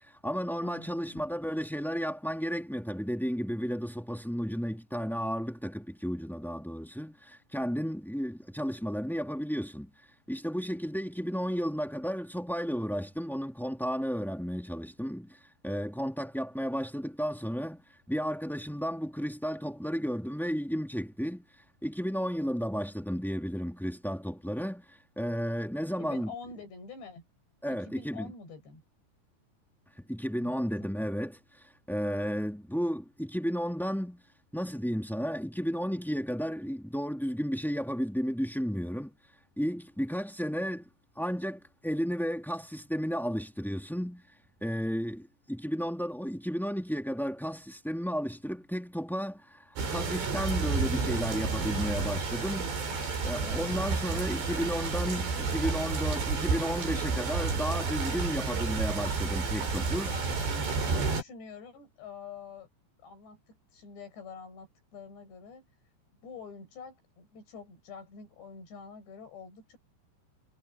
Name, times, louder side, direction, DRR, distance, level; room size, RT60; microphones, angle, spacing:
voice 1, 0.0-9.9 10.3-17.8 18.1-21.4 21.8-26.3 27.6-28.3 30.0-34.2 34.5-39.2 39.6-40.9 41.1-44.2 44.6-52.7 53.2-60.1, equal, ahead, 0.6 m, -33 dB
voice 2, 0.6-1.2 26.0-27.2 27.7-28.8 30.4-31.1 52.5-53.1 55.7-56.1 60.1-62.7 63.0-65.7 66.2-69.8, left 5 dB, 75° left, 9.8 m, -47 dB
sound 1, 49.8-61.2, right 4 dB, 75° right, 8.6 m, -31 dB
omnidirectional pair, 5.0 m